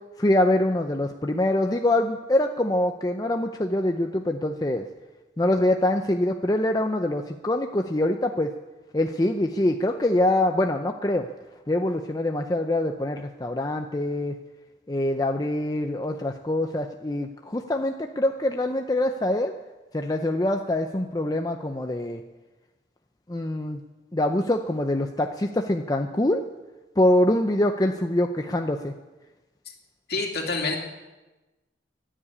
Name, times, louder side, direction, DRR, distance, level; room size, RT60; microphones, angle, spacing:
voice 1, 0.2-4.8 5.4-8.5 8.9-11.2 11.7-14.3 14.9-19.5 19.9-22.2 23.3-23.8 24.1-26.4 27.0-28.9, left 1 dB, 20° left, 4 dB, 0.6 m, -24 dB
voice 2, 30.1-30.8, left 3 dB, 55° left, 1 dB, 2.6 m, -27 dB
15.0 x 10.0 x 8.4 m, 1.1 s
head